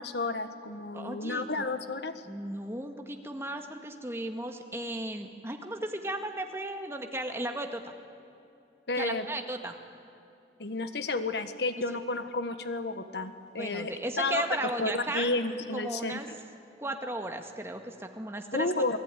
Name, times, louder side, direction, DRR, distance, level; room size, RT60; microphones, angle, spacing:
voice 1, 0.0-2.1 8.9-9.3 10.6-14.5 14.8-16.4 18.5-19.0, left 2 dB, 75° left, 10 dB, 1.4 m, -32 dB
voice 2, 0.9-1.7 2.3-7.9 9.0-9.7 13.6-15.3 15.7-16.3 16.8-18.7, right 1 dB, 15° right, 4 dB, 1.8 m, -35 dB
27.5 x 20.0 x 9.9 m, 2.7 s
head